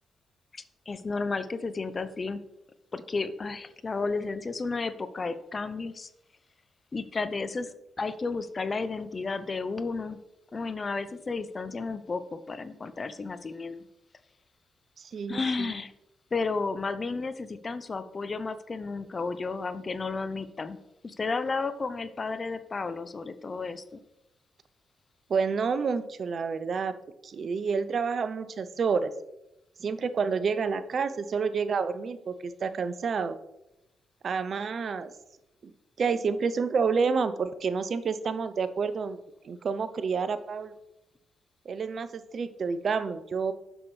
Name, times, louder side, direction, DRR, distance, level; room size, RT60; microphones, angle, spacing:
voice 1, 0.5-2.4 2.9-6.1 6.9-10.2 10.5-13.9 15.3-15.9 16.3-20.8 21.0-24.0, left 4 dB, 40° left, 13 dB, 0.6 m, -32 dB
voice 2, 15.0-15.8 25.3-26.9 27.2-29.1 29.8-33.4 34.2-35.1 35.6-35.7 36.0-39.2 39.4-40.7 41.7-43.5, right 5 dB, 55° right, 13 dB, 0.5 m, -29 dB
7.7 x 6.0 x 3.2 m, 0.89 s
supercardioid pair, 50°, 0 cm